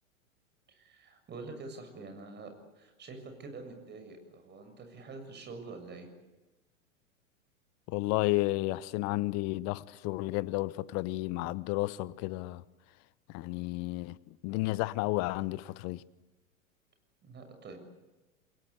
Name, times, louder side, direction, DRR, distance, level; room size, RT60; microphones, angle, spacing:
voice 1, 0.7-2.5 2.8-6.1 17.2-17.8, right 3 dB, 25° right, 7.1 m, -46 dB
voice 2, 7.9-12.6 13.3-16.0, left 19 dB, 40° left, 1.0 m, -32 dB
29.0 x 22.0 x 8.2 m
hypercardioid pair, 100°, 41 cm